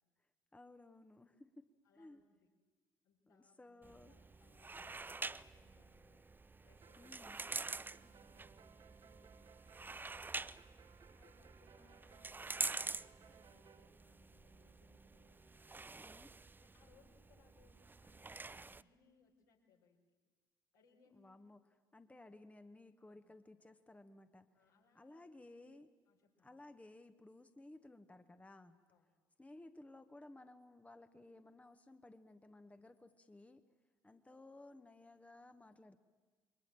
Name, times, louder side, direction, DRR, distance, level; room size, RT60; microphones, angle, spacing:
voice 1, 0.5-1.7 1.9-2.2 3.3-4.1 7.0-7.4 15.9-16.3 21.1-21.6 21.9-24.5 24.9-25.9 26.4-28.8 29.4-33.6 34.0-36.0, left 2 dB, 10° left, 9 dB, 1.4 m, -58 dB
voice 2, 1.8-2.5 3.0-6.2 6.6-7.4 7.7-10.4 11.0-15.8 16.6-20.0 20.7-21.4 23.0-23.2 24.5-25.3 26.1-26.5 28.9-29.2, left 5 dB, 70° left, -1 dB, 4.5 m, -72 dB
sound 1, 3.8-18.8, right 3 dB, 15° right, 0.7 m, -47 dB
sound 2, 6.8-13.9, right 7 dB, 40° right, 1.0 m, -65 dB
29.0 x 23.0 x 7.6 m, 1.4 s
figure-of-eight pair, 50°, 11 cm